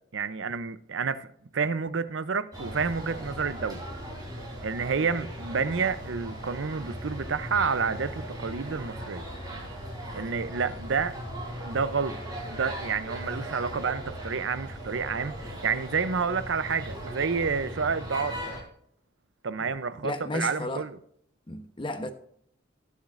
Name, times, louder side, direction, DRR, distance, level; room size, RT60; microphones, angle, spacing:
voice 1, 0.1-1.3 1.5-3.8 4.6-9.3 10.1-11.1 11.6-12.1 12.5-18.4 19.4-21.0, right 5 dB, 75° right, 0.6 m, -29 dB
sound 1, 2.5-18.6, equal, 20° right, 3.6 m, -38 dB
voice 2, 20.0-20.9 21.5-22.1, left 2 dB, 25° left, 1.0 m, -33 dB
19.0 x 7.2 x 2.5 m
head